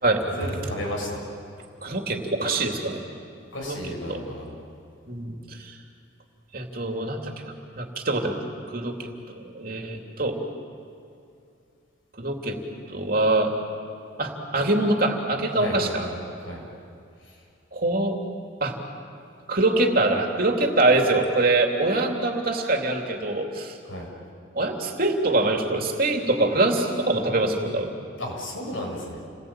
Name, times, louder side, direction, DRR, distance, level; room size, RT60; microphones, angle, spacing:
voice 1, 0.4-1.2 3.5-4.6 15.5-16.2 16.4-16.6 17.2-17.3 23.9-24.1 28.2-29.2, equal, 85° left, -1 dB, 7.4 m, -33 dB
voice 2, 1.8-3.1 3.6-4.2 5.1-5.8 6.5-8.4 8.7-10.4 12.2-12.6 12.9-13.5 14.2-16.0 17.7-18.2 18.6-18.8 19.5-23.8 24.5-27.9, right 2 dB, 50° right, 2 dB, 3.0 m, -24 dB
29.5 x 20.5 x 9.0 m, 2.5 s
head